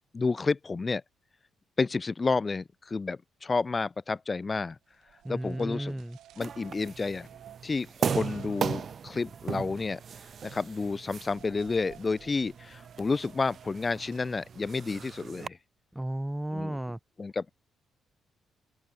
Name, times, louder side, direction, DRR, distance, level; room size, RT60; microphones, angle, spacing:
voice 1, 0.1-1.0 1.8-4.8 5.3-5.9 6.4-7.3 7.6-10.0 10.4-15.6 16.5-16.8 17.2-17.5, left 4 dB, 30° left, 0.6 m, -30 dB
sound 1, 4.9-14.9, right 12 dB, 80° right, 6.6 m, -56 dB
voice 2, 5.2-6.2 15.9-17.0, right 1 dB, 5° right, 1.1 m, -34 dB
sound 2, 6.4-15.5, right 7 dB, 50° right, 1.8 m, -37 dB
open air
cardioid pair, 90°, 0 cm